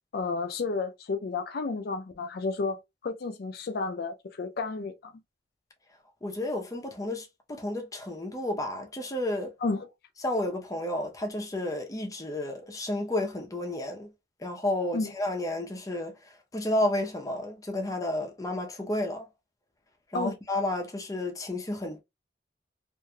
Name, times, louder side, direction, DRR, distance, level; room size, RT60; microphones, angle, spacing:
voice 1, 0.1-5.1 9.6-9.9 14.9-15.1 20.1-20.3, left 3 dB, 60° left, 0.4 m, -31 dB
voice 2, 6.2-9.5 10.2-14.1 14.4-19.3 20.1-22.0, left 1 dB, 20° left, 0.7 m, -31 dB
3.1 x 2.5 x 2.2 m
head